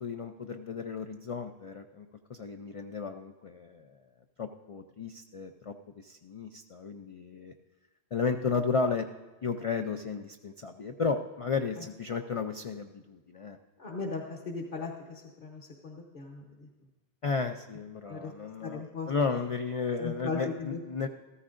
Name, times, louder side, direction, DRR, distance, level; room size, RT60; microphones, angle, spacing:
voice 1, 0.0-3.9 4.4-7.5 8.1-9.1 9.4-13.6 17.2-21.1, left 5 dB, 60° left, 6 dB, 0.3 m, -33 dB
voice 2, 13.8-16.7 18.1-18.3 18.6-19.1 20.0-20.8, left 4 dB, 45° left, -1 dB, 1.0 m, -38 dB
14.0 x 14.0 x 2.5 m, 1.2 s
omnidirectional pair, 1.2 m